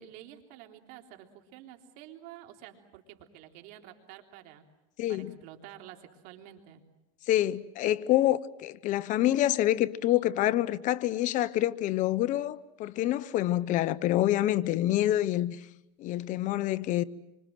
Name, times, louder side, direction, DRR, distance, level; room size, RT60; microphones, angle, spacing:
voice 1, 0.0-4.6 5.1-6.8, right 12 dB, 70° right, 3.5 m, -49 dB
voice 2, 5.0-5.3 7.3-15.7 16.0-17.0, left 14 dB, 50° left, 0.9 m, -27 dB
27.0 x 25.0 x 7.7 m
supercardioid pair, 120°, 16 cm